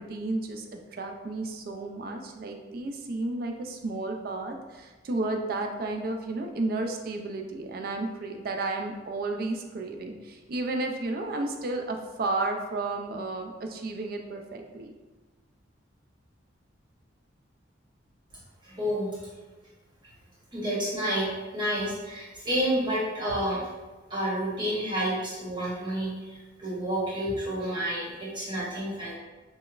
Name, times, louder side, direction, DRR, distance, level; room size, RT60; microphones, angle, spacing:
voice 1, 0.0-14.9, right 2 dB, 50° right, 4 dB, 0.3 m, -32 dB
voice 2, 18.6-19.1 20.5-23.6 24.1-29.1, equal, 25° right, -7 dB, 1.0 m, -30 dB
4.9 x 2.1 x 2.4 m, 1.2 s
head